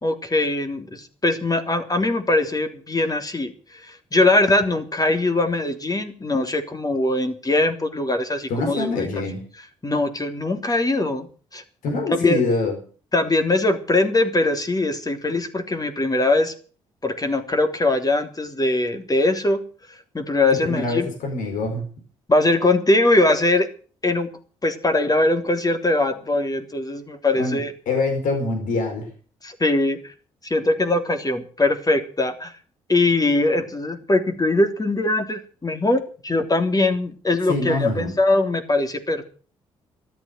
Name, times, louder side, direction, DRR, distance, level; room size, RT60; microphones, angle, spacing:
voice 1, 0.0-9.0 9.8-11.3 11.5-11.6 12.1-12.4 13.1-16.5 17.0-19.6 20.1-21.1 22.3-23.7 24.0-24.3 24.6-27.7 29.4-30.0 30.4-32.5 32.9-39.2, left 2 dB, 25° left, 7 dB, 3.3 m, -21 dB
voice 2, 8.5-9.4 11.8-12.7 20.5-21.8 27.3-29.1 37.5-38.1, left 3 dB, 70° left, 4 dB, 4.6 m, -25 dB
13.5 x 12.0 x 7.8 m, 0.40 s
hypercardioid pair, 45°, 14 cm